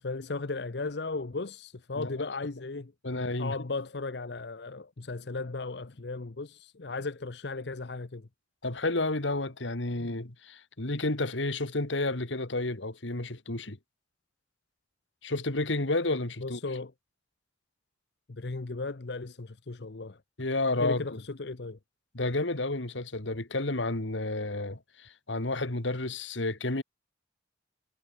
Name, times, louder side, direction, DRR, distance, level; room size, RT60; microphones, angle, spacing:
voice 1, 0.0-2.9 3.4-8.3 16.4-16.9 18.3-20.2 20.8-21.8, left 3 dB, 60° left, 0.8 m, -36 dB
voice 2, 2.0-2.3 3.0-3.6 8.6-13.8 15.2-16.6 20.4-21.0 22.1-26.8, left 2 dB, 80° left, 2.2 m, -31 dB
head